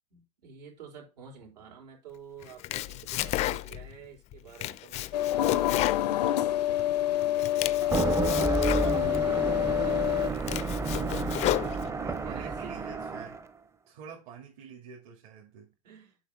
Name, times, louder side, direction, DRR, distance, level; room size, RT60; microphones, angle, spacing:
voice 1, 0.1-8.0 8.6-13.0 15.8-16.2, right 7 dB, 80° right, 3.5 m, -49 dB
Domestic sounds home sounds, 2.4-4.0 4.3-6.8 7.2-9.2 9.8-9.9 10.3-12.2, left 16 dB, 35° left, 0.4 m, -33 dB
sound 1, 5.1-10.3, left 12 dB, 80° left, 0.6 m, -27 dB
voice 2, 5.4-6.0 12.0-13.4 13.9-15.8, right 7 dB, 60° right, 2.2 m, -48 dB
sound 2, 7.8-13.5, right 4 dB, 15° right, 0.6 m, -30 dB
7.0 x 5.3 x 3.6 m
hypercardioid pair, 110°, 21 cm